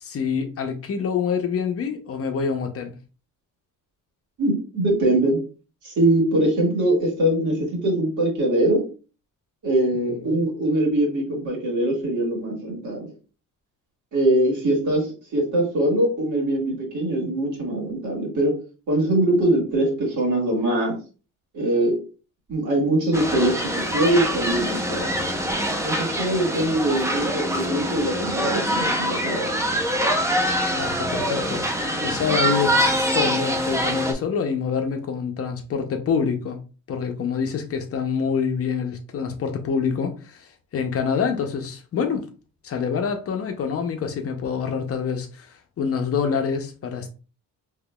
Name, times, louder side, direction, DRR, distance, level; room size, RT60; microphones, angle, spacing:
voice 1, 0.0-2.9 9.9-10.4 30.7-36.6 36.9-42.3 42.6-47.1, left 6 dB, 45° left, 0.6 m, -26 dB
voice 2, 4.4-5.4 5.8-8.8 9.6-13.1 14.1-18.6 18.9-21.0 21.5-22.0 22.5-25.1 25.8-29.7, right 1 dB, 60° right, 1.9 m, -22 dB
sound 1, 23.1-34.1, equal, 10° right, 0.5 m, -24 dB
3.8 x 2.9 x 2.2 m
cardioid pair, 135°, 33 cm